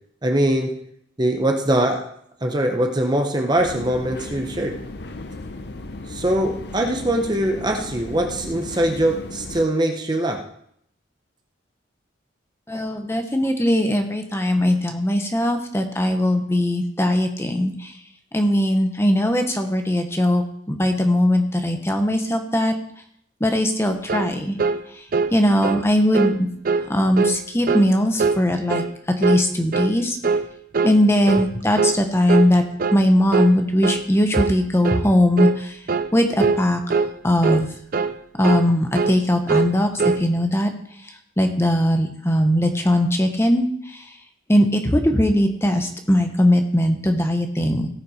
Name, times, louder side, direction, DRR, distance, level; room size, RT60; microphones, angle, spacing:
voice 1, 0.2-0.8 1.2-2.1 2.4-4.8 6.1-10.5, right 1 dB, 20° right, 3 dB, 0.9 m, -22 dB
sound 1, 3.6-9.7, left 2 dB, 55° left, 0.8 m, -36 dB
voice 2, 12.7-17.9 18.3-22.7 23.4-24.6 25.3-26.5 26.9-28.8 29.2-30.2 30.8-32.6 32.9-35.8 36.1-36.8 37.2-37.7 38.4-40.7 41.4-44.0 44.5-47.9, left 1 dB, 15° left, 5 dB, 1.1 m, -20 dB
sound 2, 24.1-24.3 24.6-24.8 25.1-25.3 25.6-25.9 26.1-26.4 26.7-26.9 27.2-27.4 27.7-27.9 28.2-28.4 28.7-28.9 29.2-29.5 29.7-30.0 30.2-30.5 30.7-31.0 31.3-31.5 31.8-32.0 32.3-32.5 32.8-33.0 33.3-33.5 33.8-34.0 34.3-34.6 34.8-35.1 35.4-35.6 35.9-36.1 36.4-36.6 36.9-37.1 37.4-37.7 37.9-38.2 38.4-38.7 38.9-39.2 39.5-40.2, right 4 dB, 45° right, 0.5 m, -21 dB
17.5 x 5.8 x 5.0 m, 0.69 s
head